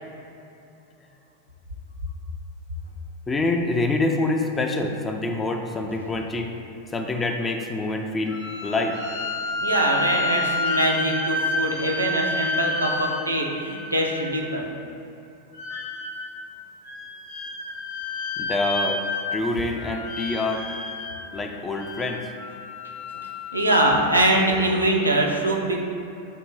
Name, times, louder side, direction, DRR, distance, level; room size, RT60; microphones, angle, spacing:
voice 1, 3.3-6.5 6.8-9.0 18.4-19.0 19.3-20.7 21.3-22.3, left 2 dB, 15° left, 3 dB, 0.6 m, -26 dB
sound 1, 8.3-14.5 15.5-16.4 16.9-19.5 19.7-21.2 21.7-23.8, left 2 dB, 55° left, 1.3 m, -30 dB
voice 2, 9.6-14.7 23.5-25.8, right 1 dB, 85° right, -1 dB, 0.8 m, -23 dB
8.2 x 2.9 x 5.4 m, 2.8 s
figure-of-eight pair, 90°, 0 cm